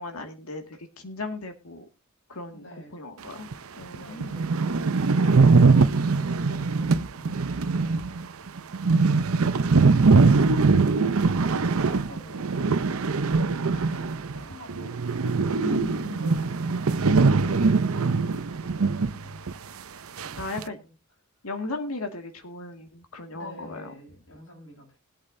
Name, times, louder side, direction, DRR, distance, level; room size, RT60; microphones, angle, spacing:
voice 1, 0.0-1.9 2.3-2.7 2.9-3.5 3.8-4.3 15.6-16.3 20.4-20.8 21.4-23.9, left 3 dB, 80° left, 5 dB, 2.1 m, -36 dB
voice 2, 2.5-3.0 3.5-8.3 8.7-10.5 11.0-12.7 13.3-15.4 15.9-19.5 20.2-20.9 23.3-25.0, equal, 65° left, 0 dB, 7.4 m, -49 dB
sound 1, 3.5-3.6 3.9-4.0 4.2-14.4 14.7-19.2 19.5-19.6 20.2-20.6, right 4 dB, 75° right, 0.7 m, -22 dB
21.5 x 8.6 x 2.7 m, 0.27 s
head